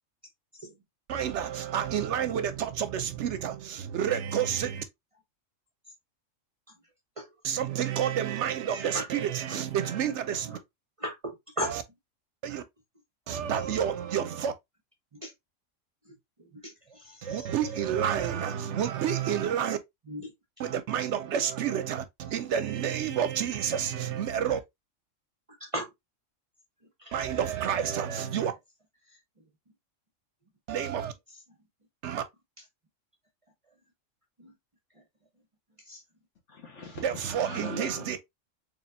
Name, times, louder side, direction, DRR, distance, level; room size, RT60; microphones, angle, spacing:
voice 1, 1.1-4.8 7.4-10.6 12.4-12.6 13.3-14.5 17.2-19.8 20.6-24.6 27.1-28.5 30.7-31.1 32.0-32.2 37.0-38.2, right 9 dB, 70° right, 0.8 m, -29 dB
voice 2, 6.7-7.4 7.9-8.1 8.7-9.1 9.4-9.6 10.5-10.6 11.0-11.7 13.5-13.7 15.1-15.3 16.0-18.4 20.1-20.3 22.3-22.4 25.5-25.9 26.8-27.2 29.0-29.5 31.3-31.6 32.6-32.7 33.6-33.8 34.4-34.5 34.9-35.1 35.3-35.4 35.7-36.0, equal, 35° right, 0.6 m, -40 dB
voice 3, 36.5-38.2, left 3 dB, 65° left, 1.7 m, -42 dB
4.2 x 3.3 x 2.6 m
omnidirectional pair, 1.3 m